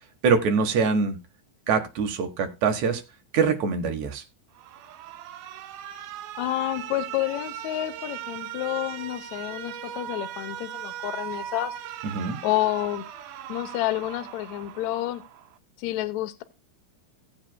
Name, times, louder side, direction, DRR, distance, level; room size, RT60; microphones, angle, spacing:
voice 1, 0.2-1.2 1.7-3.0 3.3-4.2 12.0-12.4, right 5 dB, 60° right, 5 dB, 2.1 m, -24 dB
Alarm, 4.5-15.6, right 11 dB, 75° right, 2.6 m, -39 dB
voice 2, 6.4-11.7 12.4-13.0 13.5-15.2 15.8-16.4, left 15 dB, 80° left, 9 dB, 1.6 m, -29 dB
17.5 x 7.8 x 2.2 m, 0.26 s
omnidirectional pair, 4.5 m